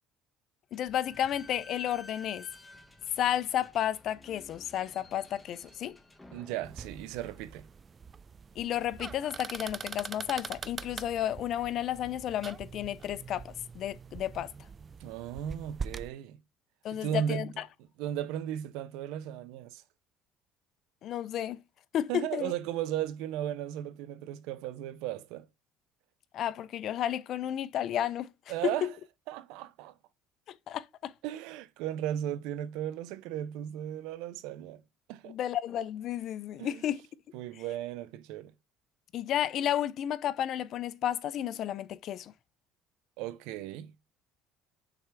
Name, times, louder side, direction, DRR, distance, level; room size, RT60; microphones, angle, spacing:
voice 1, 0.7-2.5 3.2-6.0 8.6-14.5 16.8-17.5 21.0-21.6 21.9-22.5 26.3-28.3 28.6-28.9 30.7-31.1 35.3-37.0 39.1-42.3, left 11 dB, 55° left, 0.6 m, -32 dB
Slam / Squeak, 0.7-8.0, left 2 dB, 10° left, 1.1 m, -54 dB
voice 2, 6.3-7.7 15.0-16.4 16.9-17.5 18.0-19.8 22.1-25.5 28.5-28.9 29.3-29.9 31.2-34.8 35.1-35.3 36.6-36.8 37.3-38.5 43.2-43.9, right 11 dB, 80° right, 0.6 m, -36 dB
sound 1, 6.6-16.1, right 5 dB, 30° right, 0.3 m, -43 dB
6.2 x 3.4 x 4.6 m
cardioid pair, 115°, 0 cm